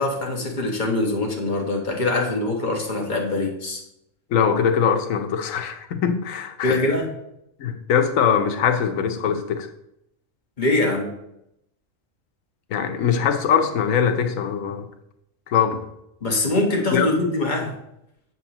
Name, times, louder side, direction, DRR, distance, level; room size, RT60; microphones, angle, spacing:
voice 1, 0.0-3.8 6.6-7.1 10.6-11.1 16.2-17.7, left 2 dB, 35° left, 0 dB, 1.4 m, -23 dB
voice 2, 4.3-6.8 7.6-9.7 12.7-14.9 15.5-15.8 16.9-17.1, left 7 dB, 90° left, 6 dB, 1.2 m, -22 dB
7.8 x 7.5 x 3.0 m, 0.81 s
omnidirectional pair, 1.3 m